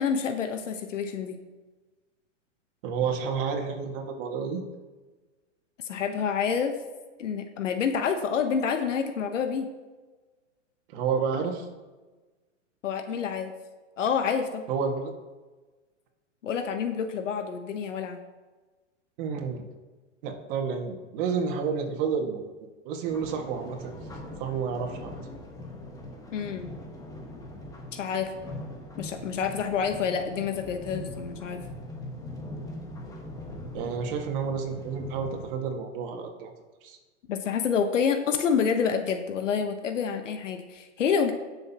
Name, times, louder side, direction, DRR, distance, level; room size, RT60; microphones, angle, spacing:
voice 1, 0.0-1.4 5.8-6.7 7.2-9.7 12.8-13.5 14.0-14.7 16.4-18.2 26.3-26.7 27.9-28.3 29.0-31.6 37.3-41.3, left 6 dB, 80° left, 7 dB, 1.1 m, -28 dB
voice 2, 2.8-4.6 10.9-11.7 14.7-15.1 19.2-19.6 20.2-22.4 22.9-23.9 24.4-25.1 33.7-36.5 36.8-37.0, right 6 dB, 45° right, 2 dB, 1.9 m, -30 dB
sound 1, 23.1-35.5, left 1 dB, 10° left, 1.2 m, -41 dB
17.0 x 6.7 x 2.9 m, 1.3 s
hypercardioid pair, 130°, 37 cm